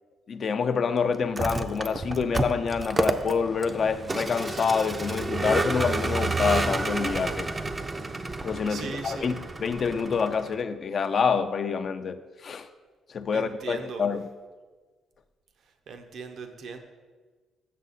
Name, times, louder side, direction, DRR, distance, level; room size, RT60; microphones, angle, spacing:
voice 1, 0.3-7.5 8.4-9.3 9.6-12.7 13.1-14.3, left 5 dB, 50° left, 0.4 m, -27 dB
Vehicle, 1.2-10.6, right 3 dB, 25° right, 0.5 m, -30 dB
voice 2, 8.7-9.4 13.3-14.1 15.9-16.8, right 4 dB, 65° right, 0.8 m, -38 dB
7.4 x 6.4 x 4.1 m
cardioid pair, 90°, 0 cm